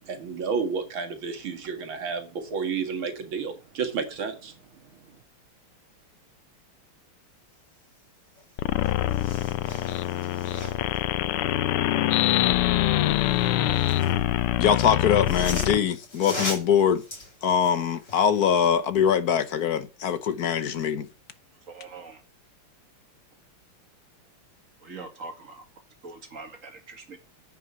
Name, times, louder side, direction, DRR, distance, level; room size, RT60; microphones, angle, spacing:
voice 1, 0.0-4.5, right 5 dB, 70° right, 2.6 m, -31 dB
sound 1, 8.4-8.5 8.7-11.0 13.1-14.2 15.0-18.3 18.8-18.9, left 1 dB, 30° left, 5.1 m, -38 dB
sound 2, 8.6-15.8, left 14 dB, 90° left, 1.6 m, -24 dB
voice 2, 14.6-17.0 17.4-21.1, left 8 dB, 55° left, 1.2 m, -23 dB
voice 3, 21.7-22.2 24.8-25.7 26.0-27.2, right 3 dB, 35° right, 2.5 m, -42 dB
9.6 x 6.1 x 8.0 m
omnidirectional pair, 2.4 m